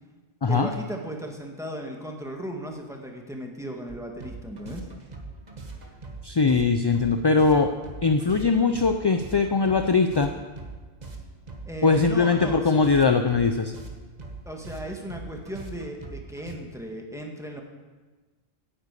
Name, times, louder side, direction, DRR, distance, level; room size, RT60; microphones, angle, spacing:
voice 1, 0.5-4.9 11.6-12.9 14.4-17.6, right 1 dB, 5° right, 1 dB, 1.6 m, -36 dB
sound 1, 3.9-16.6, right 3 dB, 45° right, 1.4 m, -42 dB
voice 2, 6.2-7.7 8.0-10.3 11.8-13.7, left 4 dB, 35° left, 6 dB, 0.4 m, -21 dB
10.0 x 9.0 x 8.2 m, 1.3 s
omnidirectional pair, 1.0 m